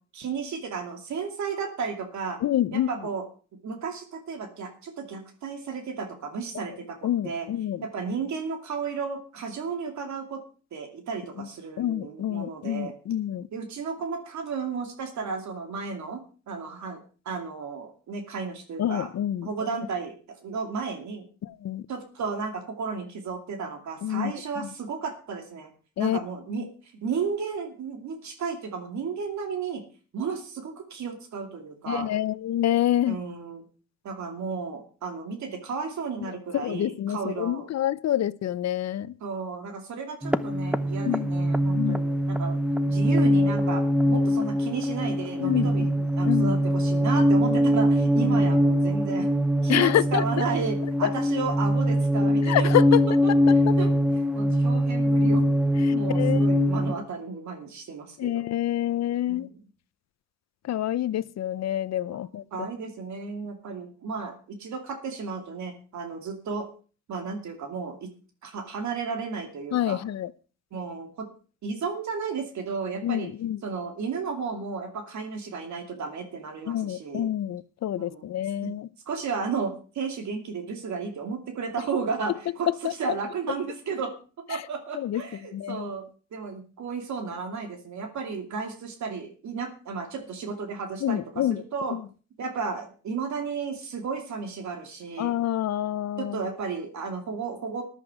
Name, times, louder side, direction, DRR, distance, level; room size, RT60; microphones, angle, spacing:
voice 1, 0.1-2.4 2.7-3.2 3.6-7.5 7.8-10.4 10.7-12.9 13.5-16.2 16.5-17.0 17.3-19.1 19.4-21.3 21.9-25.7 26.0-26.7 27.0-29.8 30.1-32.1 33.1-33.6 34.0-37.7 39.2-42.6 42.9-43.8 44.1-49.3 49.6-52.7 53.2-55.4 55.9-58.4 59.3-59.5 62.5-66.7 67.1-68.1 68.4-70.0 70.7-71.3 71.6-73.3 73.6-77.3 78.0-78.3 78.6-78.7 79.1-84.1 84.5-86.0 86.3-92.0 92.4-95.3 96.2-97.8, right 5 dB, 70° right, 2.6 m, -33 dB
voice 2, 2.4-2.9 7.0-7.8 11.8-13.5 18.8-19.5 21.4-21.8 24.0-24.3 26.0-26.2 26.6-26.7 31.9-33.2 36.2-36.3 36.6-39.1 41.0-41.3 41.7-42.0 45.4-45.7 46.3-46.6 48.2-48.4 49.7-50.4 51.0-51.1 52.5-53.0 56.2-56.8 58.2-59.5 60.7-62.4 69.7-70.3 73.0-73.6 76.7-78.9 84.9-85.2 85.5-85.9 91.0-91.6 91.9-92.0 95.2-96.4, left 12 dB, 60° left, 0.7 m, -27 dB
sound 1, 40.2-56.9, equal, 5° right, 0.8 m, -23 dB
14.0 x 11.0 x 4.9 m
cardioid pair, 90°, 30 cm